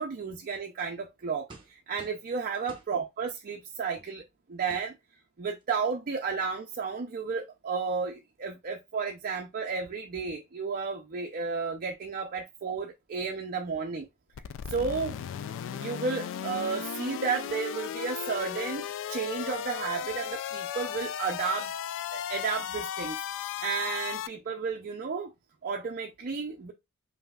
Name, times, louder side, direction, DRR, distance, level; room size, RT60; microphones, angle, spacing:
voice 1, 0.0-5.0 5.4-14.1 14.7-15.2 15.7-21.7 22.1-23.2 23.6-25.3 25.6-26.7, right 5 dB, 40° right, 0.5 m, -33 dB
sound 1, 1.5-2.3 2.7-2.9 4.0-4.1 4.7-4.9 5.6-5.7 5.9-6.2, right 3 dB, 20° right, 0.8 m, -49 dB
sound 2, 14.3-24.3, left 9 dB, 60° left, 0.3 m, -36 dB
5.4 x 2.7 x 2.3 m
head